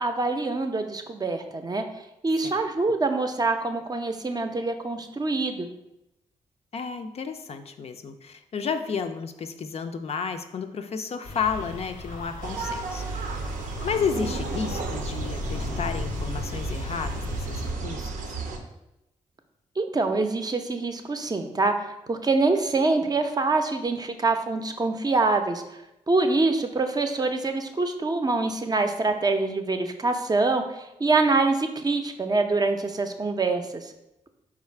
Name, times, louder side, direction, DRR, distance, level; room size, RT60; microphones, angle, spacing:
voice 1, 0.0-1.8 2.2-5.7 19.8-25.6 26.1-33.9, right 3 dB, 30° right, 6 dB, 0.5 m, -25 dB
voice 2, 6.7-13.1 13.8-18.3, left 6 dB, 50° left, 7 dB, 0.4 m, -32 dB
sound 1, 11.2-17.7, left 3 dB, 80° left, 0.7 m, -36 dB
sound 2, 12.4-18.6, right 4 dB, 80° right, 0.5 m, -33 dB
3.9 x 2.4 x 4.3 m, 0.90 s
supercardioid pair, 50°, 13 cm